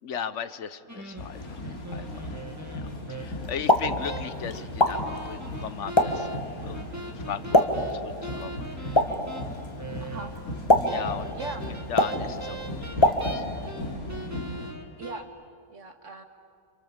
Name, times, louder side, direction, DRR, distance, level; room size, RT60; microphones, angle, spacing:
voice 1, 0.0-1.6 1.9-2.3 2.7-6.3 6.6-6.9 7.1-9.1 10.7-11.3 11.9-12.6 12.8-13.5, left 8 dB, 55° left, 14 dB, 1.2 m, -37 dB
sound 1, 0.9-3.6 4.0-10.5 10.9-13.8 14.1-15.2, right 2 dB, 10° right, 1.8 m, -41 dB
sound 2, 1.2-14.7, left 1 dB, 75° left, 3.1 m, -37 dB
Explosion, 3.4-13.7, left 1 dB, 20° left, 1.7 m, -27 dB
voice 2, 10.0-10.3 11.4-11.7 15.0-15.3 15.7-16.2, right 2 dB, 55° right, 5 dB, 2.2 m, -39 dB
29.5 x 27.5 x 7.2 m, 2.2 s
omnidirectional pair, 1.6 m